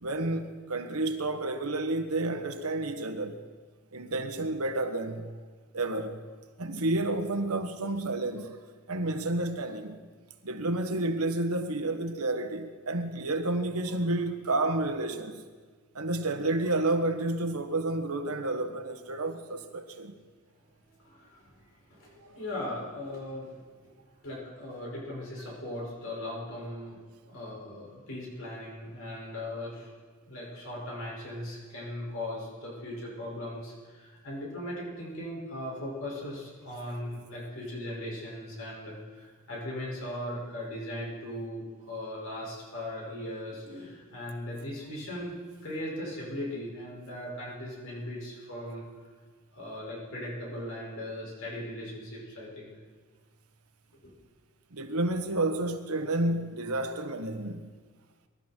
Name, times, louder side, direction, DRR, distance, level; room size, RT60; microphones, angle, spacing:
voice 1, 0.0-3.4 3.9-5.3 5.7-8.6 8.9-10.0 10.4-15.4 15.9-20.1 22.3-22.4 54.7-57.7, right 2 dB, 85° right, 1.4 m, -30 dB
voice 2, 21.0-23.9 24.2-27.0 27.2-29.9 30.2-45.4 45.6-48.8 49.5-52.7, left 1 dB, 65° left, 6.0 m, -38 dB
23.5 x 12.5 x 4.5 m
head